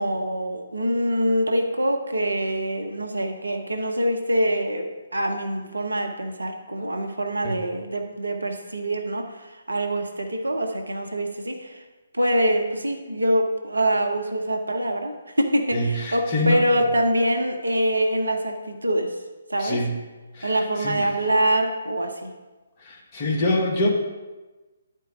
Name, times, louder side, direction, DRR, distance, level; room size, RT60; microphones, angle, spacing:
voice 1, 0.0-11.8 12.1-19.1 19.5-19.8 20.4-22.3, right 1 dB, 75° right, 4 dB, 1.0 m, -24 dB
voice 2, 15.7-16.6 19.6-19.9 20.4-20.5 20.8-21.0 22.8-23.9, left 1 dB, 25° left, -2 dB, 1.5 m, -25 dB
10.5 x 4.6 x 5.0 m, 1.2 s
figure-of-eight pair, 135°, 0 cm